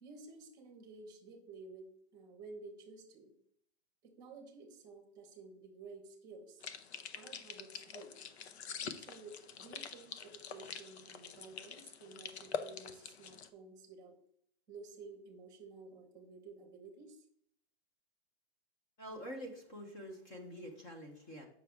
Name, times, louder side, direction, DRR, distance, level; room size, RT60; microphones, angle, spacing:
voice 1, 0.0-3.3 4.0-6.6 7.1-8.1 8.9-14.1 14.7-17.2, right 3 dB, 10° right, 3 dB, 1.1 m, -53 dB
sound 1, 6.6-13.5, left 6 dB, 90° left, 0.8 m, -45 dB
voice 2, 19.0-21.5, equal, 15° left, 3 dB, 0.5 m, -46 dB
7.6 x 6.0 x 3.4 m, 0.67 s
hypercardioid pair, 175°, 32 cm